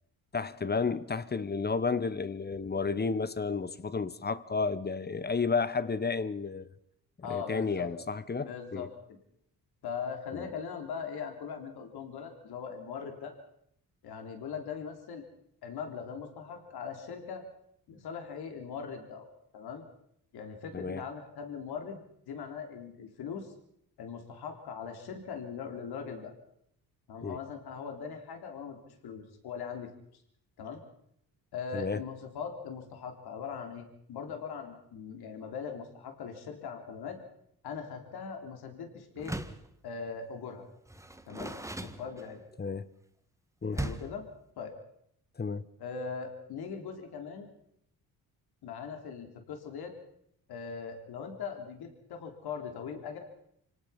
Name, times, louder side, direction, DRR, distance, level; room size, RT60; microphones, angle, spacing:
voice 1, 0.3-6.7 7.2-8.9 10.3-10.5 20.7-21.1 27.2-27.4 31.7-32.0 42.6-42.9 43.6-43.8 45.4-45.6, left 4 dB, 25° left, 1.0 m, -32 dB
voice 2, 7.2-7.9 8.4-9.2 9.8-13.3 14.0-15.3 15.6-17.4 17.9-19.3 19.5-19.8 20.3-22.0 22.3-23.5 24.0-26.3 27.1-30.2 30.6-30.8 31.5-37.2 37.6-39.4 39.8-40.6 41.3-42.4 43.7-44.3 44.6-44.7 45.8-47.5 48.6-49.9 50.5-53.2, left 6 dB, 75° left, 3.5 m, -40 dB
Door, 39.2-39.7 40.9-42.5 43.7-44.2, right 1 dB, 10° right, 1.8 m, -38 dB
25.0 x 18.5 x 5.8 m
cardioid pair, 80°, 38 cm